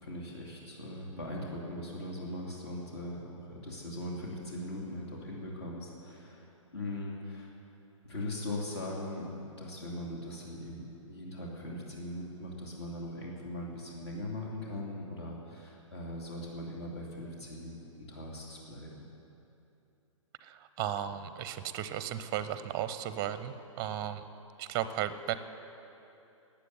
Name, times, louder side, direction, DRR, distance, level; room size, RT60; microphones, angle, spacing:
voice 1, 0.0-7.5 8.0-9.3 9.6-19.1, left 1 dB, 55° left, -3 dB, 2.7 m, -40 dB
voice 2, 20.4-24.2 24.6-25.4, right 10 dB, 20° right, 13 dB, 0.6 m, -35 dB
14.5 x 9.0 x 9.5 m, 2.9 s
figure-of-eight pair, 120°, 17 cm